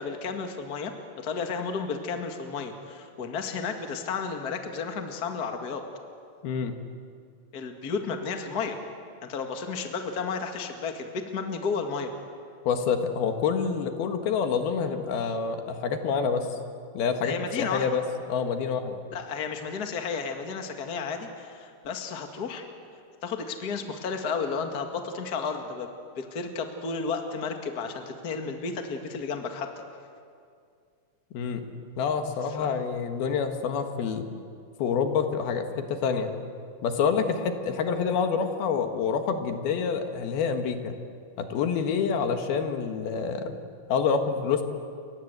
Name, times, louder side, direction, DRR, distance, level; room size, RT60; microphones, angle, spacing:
voice 1, 0.0-5.8 7.5-8.8 9.2-12.1 17.2-17.9 19.1-22.7 23.2-25.9 26.2-29.7 32.5-32.7, left 5 dB, 35° left, 5 dB, 1.8 m, -32 dB
voice 2, 6.4-6.7 12.7-16.6 17.0-18.0 18.3-19.0 31.3-31.6 32.0-34.3 34.8-36.4 36.8-41.0 41.4-43.6 43.9-44.6, left 6 dB, 80° left, 6 dB, 3.5 m, -27 dB
29.0 x 24.0 x 8.1 m, 2.3 s
omnidirectional pair, 4.4 m